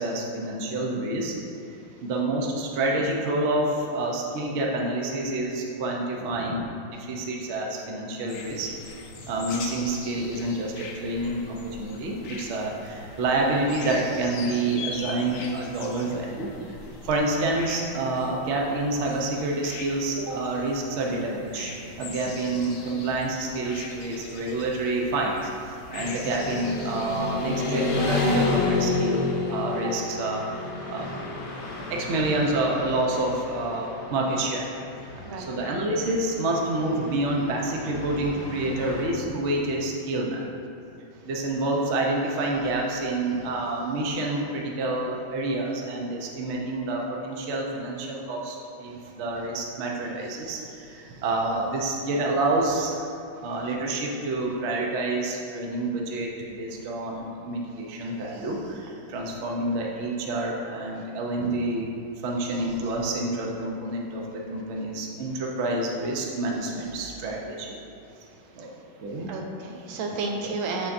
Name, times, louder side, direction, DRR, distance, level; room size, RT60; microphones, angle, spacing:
voice 1, 0.0-1.3 2.0-8.7 9.3-16.5 17.0-34.6 35.4-40.4 41.3-53.1 53.4-61.9 62.2-67.8 68.6-68.7 69.0-69.3 70.4-70.5, right 2 dB, 65° right, -1 dB, 0.6 m, -28 dB
voice 2, 6.2-6.5 9.2-9.3 16.9-17.1 35.2-35.6 51.1-51.2 56.7-56.8 61.4-61.5 68.6-68.7 69.3-70.9, right 3 dB, 85° right, 1 dB, 1.5 m, -33 dB
sound 1, 8.3-28.2, left 4 dB, 85° left, 0.7 m, -42 dB
Motorcycle / Traffic noise roadway noise, 25.9-39.0, left 3 dB, 70° left, 1.5 m, -31 dB
7.0 x 6.1 x 2.6 m, 2.6 s
omnidirectional pair, 2.2 m